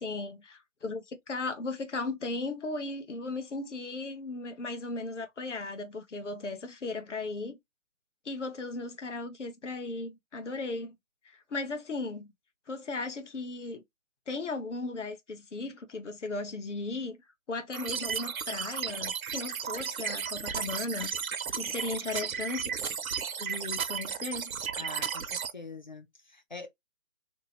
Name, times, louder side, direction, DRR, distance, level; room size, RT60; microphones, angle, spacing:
voice 1, 0.0-7.6 8.2-10.9 11.2-12.3 12.7-13.8 14.3-17.2 17.5-21.1 21.5-22.7 23.4-24.5, left 3 dB, 60° left, 0.8 m, -36 dB
sound 1, 17.7-25.5, right 7 dB, 85° right, 0.6 m, -34 dB
voice 2, 24.8-26.7, left 3 dB, 35° left, 0.4 m, -44 dB
2.8 x 2.2 x 2.8 m
figure-of-eight pair, 155°, 41 cm